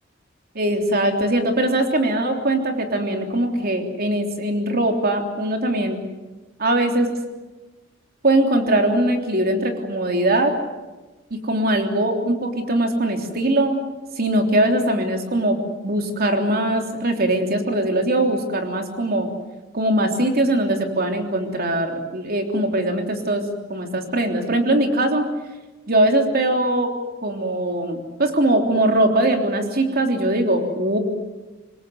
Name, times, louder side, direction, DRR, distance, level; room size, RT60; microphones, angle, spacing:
voice 1, 0.5-6.0 6.6-7.1 8.2-10.5 11.3-13.8 14.2-15.6 15.8-19.3 19.7-23.4 23.7-25.3 25.9-26.9 27.2-31.0, right 1 dB, 50° right, 4 dB, 3.4 m, -21 dB
27.0 x 21.5 x 7.9 m, 1.2 s
head